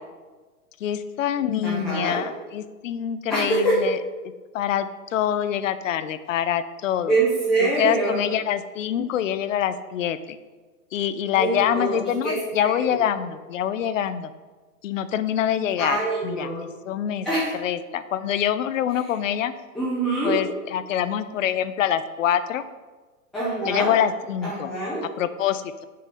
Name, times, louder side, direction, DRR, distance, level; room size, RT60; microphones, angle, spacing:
voice 1, 0.8-4.0 4.5-7.1 7.6-10.4 10.9-14.3 14.8-17.3 17.5-19.5 20.2-22.6 23.6-24.7 25.2-25.9, left 10 dB, 55° left, 13 dB, 0.6 m, -25 dB
voice 2, 1.6-2.2 3.3-3.8 7.1-8.1 11.3-12.0 12.2-13.0 15.8-16.7 17.2-17.5 19.7-20.3 23.3-23.9 24.4-25.0, right 2 dB, ahead, -10 dB, 0.4 m, -24 dB
6.6 x 6.4 x 4.1 m, 1.3 s
hypercardioid pair, 140°, 46 cm